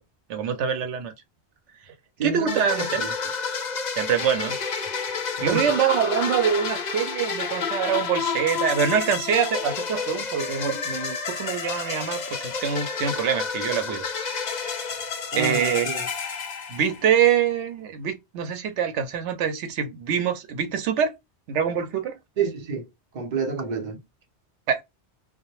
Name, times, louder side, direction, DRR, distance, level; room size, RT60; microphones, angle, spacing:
voice 1, 0.3-1.1 2.2-3.0 4.0-4.6 5.4-14.0 15.3-15.9 16.7-21.2 21.5-22.2 24.7-24.8, right 8 dB, 90° right, 0.9 m, -25 dB
voice 2, 2.2-3.1 5.4-5.7 15.3-16.1 22.4-22.9 23.1-24.0, right 6 dB, 45° right, 0.8 m, -29 dB
sound 1, 2.5-17.2, left 5 dB, 50° left, 0.5 m, -30 dB
2.1 x 2.1 x 2.9 m
omnidirectional pair, 1.2 m